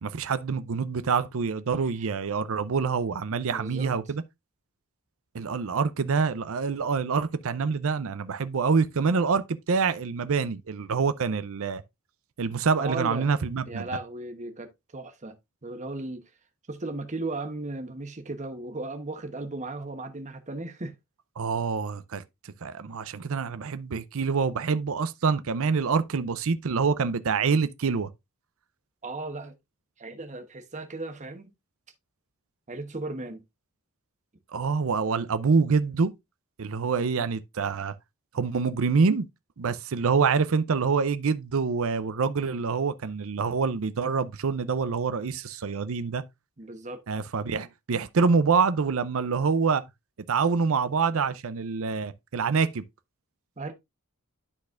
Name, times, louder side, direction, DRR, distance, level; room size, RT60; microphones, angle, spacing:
voice 1, 0.0-4.2 5.3-11.8 12.4-13.9 21.4-28.1 34.5-36.1 36.6-37.9 38.3-39.3 39.6-46.2 47.1-49.8 50.3-52.8, right 5 dB, 65° right, 0.6 m, -26 dB
voice 2, 3.5-4.0 12.8-13.3 13.7-15.3 15.6-16.2 16.7-21.0 29.0-29.5 30.0-31.5 32.7-33.4 46.6-47.0 53.6-53.7, right 2 dB, 35° right, 1.1 m, -36 dB
12.0 x 4.1 x 2.5 m
head